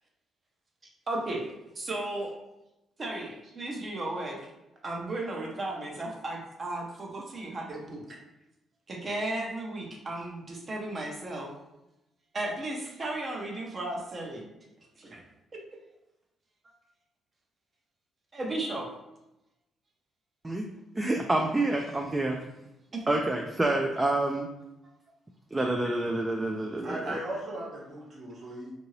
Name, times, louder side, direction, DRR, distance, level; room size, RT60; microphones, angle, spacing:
voice 1, 1.1-1.5 1.7-2.3 3.0-4.5 4.8-8.2 8.9-11.5 12.3-14.5 15.0-15.2 18.3-18.9 22.9-23.0 25.6-25.8, right 2 dB, 35° right, 0 dB, 0.7 m, -35 dB
voice 2, 20.9-22.4 23.1-24.5 25.5-27.1, right 2 dB, 15° right, 2 dB, 0.3 m, -28 dB
voice 3, 26.8-28.7, right 1 dB, 55° right, -5 dB, 1.1 m, -37 dB
2.7 x 2.6 x 3.0 m, 0.93 s
cardioid pair, 90°, 0 cm